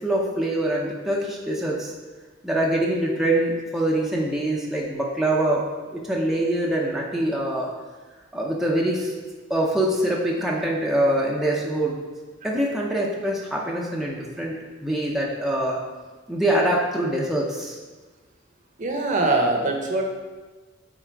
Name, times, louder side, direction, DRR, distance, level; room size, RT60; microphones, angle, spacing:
voice 1, 0.0-1.9 2.4-5.6 5.9-7.7 8.3-9.1 9.5-12.0 12.4-15.8 16.3-17.8, right 1 dB, ahead, -4 dB, 0.7 m, -24 dB
voice 2, 18.8-20.0, right 2 dB, 40° right, 2 dB, 0.9 m, -22 dB
7.7 x 3.6 x 4.6 m, 1.3 s
head